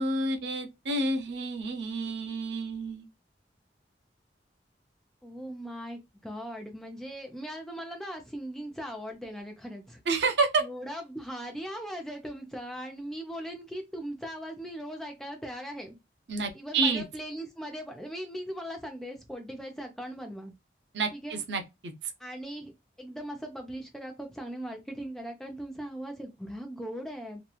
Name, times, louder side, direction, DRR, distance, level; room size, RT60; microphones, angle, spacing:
voice 1, 0.0-3.1 10.1-10.6 16.3-17.0 20.9-22.1, right 3 dB, 85° right, 0.6 m, -29 dB
voice 2, 5.2-10.0 10.6-16.0 16.5-20.5 21.1-21.4 22.2-22.7 23.0-27.4, equal, 5° left, 0.5 m, -39 dB
2.9 x 2.3 x 2.3 m
head